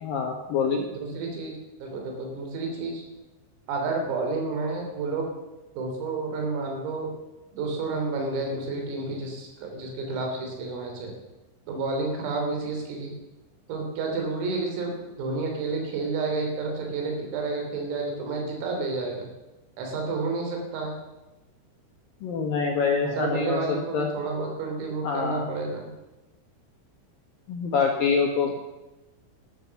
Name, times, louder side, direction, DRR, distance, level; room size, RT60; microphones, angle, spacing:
voice 1, 0.0-0.9 22.2-23.6 23.9-24.1 25.0-25.5 27.5-28.5, left 5 dB, 70° left, 2 dB, 2.2 m, -25 dB
voice 2, 0.9-3.0 3.7-5.3 5.8-7.1 7.5-11.1 11.7-13.1 13.7-19.3 19.8-21.0 23.1-25.9, right 3 dB, 90° right, 2 dB, 5.9 m, -30 dB
13.5 x 12.5 x 7.0 m, 1.0 s
omnidirectional pair, 5.9 m